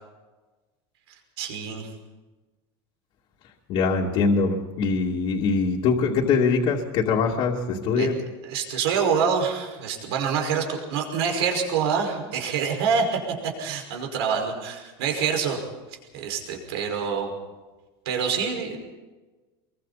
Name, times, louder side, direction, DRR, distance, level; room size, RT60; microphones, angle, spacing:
voice 1, 1.4-1.9 8.0-8.1 8.4-15.6 16.1-17.3 18.1-18.8, right 6 dB, 80° right, 3 dB, 5.4 m, -26 dB
voice 2, 3.7-8.1, left 4 dB, 40° left, -5 dB, 2.6 m, -23 dB
26.5 x 23.5 x 4.3 m, 1.2 s
supercardioid pair, 160°, 13 cm